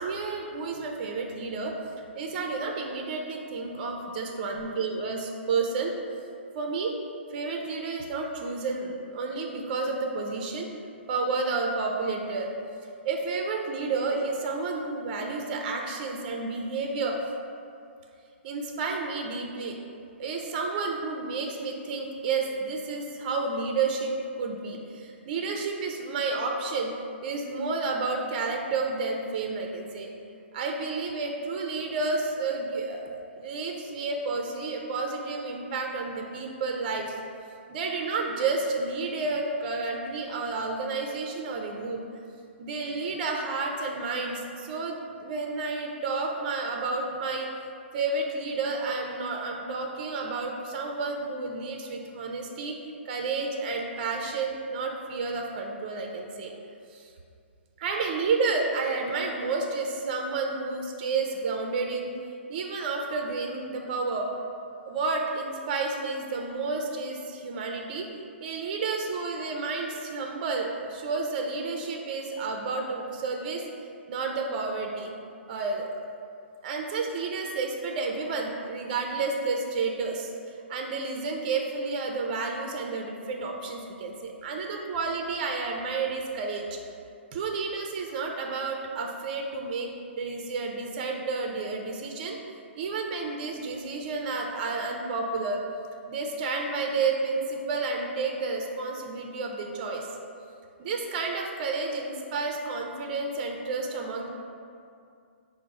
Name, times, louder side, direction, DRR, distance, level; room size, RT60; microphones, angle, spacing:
voice 1, 0.0-1.8 2.2-5.9 6.5-7.0 7.3-10.7 11.1-12.5 13.0-17.2 18.4-19.8 20.2-26.9 27.2-30.1 30.5-37.1 37.7-42.0 42.6-47.5 47.9-52.7 53.1-56.5 56.9-57.1 57.8-62.1 62.5-64.3 64.8-68.1 68.4-73.6 74.1-75.1 75.5-76.0 76.6-80.3 80.7-86.6 87.3-89.9 90.2-92.4 92.8-95.6 96.1-100.1 100.8-104.3, right 4 dB, 40° right, 2 dB, 0.4 m, -31 dB
4.5 x 2.0 x 3.9 m, 2.4 s
hypercardioid pair, 130°, 7 cm